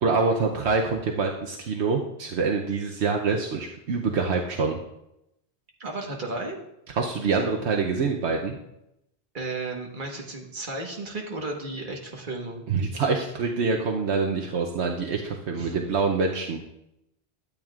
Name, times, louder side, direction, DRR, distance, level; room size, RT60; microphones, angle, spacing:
voice 1, 0.0-4.8 6.9-8.6 12.7-16.6, right 4 dB, 75° right, 1 dB, 1.0 m, -25 dB
voice 2, 5.8-6.6 9.3-12.6 15.6-15.7, right 2 dB, 50° right, 1 dB, 1.5 m, -34 dB
12.0 x 8.8 x 2.4 m, 0.84 s
omnidirectional pair, 1.1 m